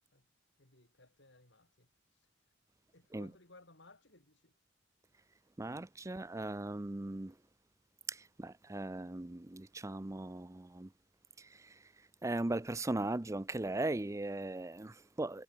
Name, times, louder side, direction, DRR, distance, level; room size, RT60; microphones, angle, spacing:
voice 1, 0.6-2.3 2.9-4.6 6.0-6.2, left 2 dB, 60° left, 7.1 m, -62 dB
voice 2, 5.6-7.4 8.1-10.9 11.4-15.4, right 2 dB, 15° right, 0.5 m, -38 dB
head